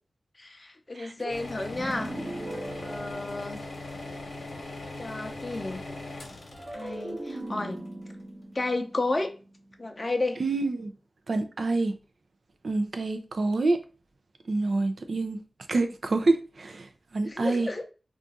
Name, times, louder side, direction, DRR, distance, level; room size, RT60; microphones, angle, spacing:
voice 1, 0.4-2.2 2.8-3.6 5.0-5.8 6.7-7.8 8.5-9.3 9.8-10.4 17.3-17.8, left 2 dB, 40° left, 0.5 m, -32 dB
sound 1, 1.3-8.2, left 2 dB, 80° left, 0.9 m, -40 dB
sound 2, 1.7-4.1 6.5-9.8, right 1 dB, 40° right, 0.8 m, -39 dB
voice 2, 10.4-10.9 11.3-11.9 12.6-13.8 14.5-15.4 15.7-16.9 17.1-17.7, right 3 dB, 70° right, 0.4 m, -26 dB
2.4 x 2.4 x 3.9 m
cardioid pair, 55°, 0 cm